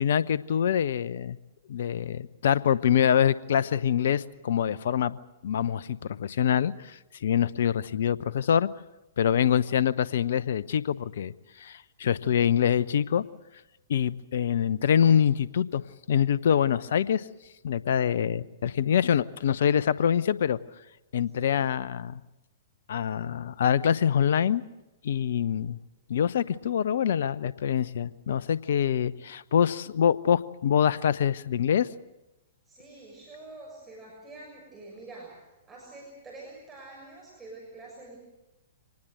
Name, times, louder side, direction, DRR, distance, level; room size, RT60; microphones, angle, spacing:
voice 1, 0.0-1.4 1.7-5.2 5.4-8.7 9.2-13.2 13.9-17.3 17.6-20.6 21.1-22.2 22.9-24.6 25.0-25.8 26.1-31.9, left 8 dB, 65° left, 19 dB, 0.7 m, -25 dB
voice 2, 32.6-38.2, right 2 dB, 15° right, -3 dB, 6.8 m, -46 dB
25.0 x 19.5 x 7.8 m, 0.97 s
figure-of-eight pair, 110°, 0 cm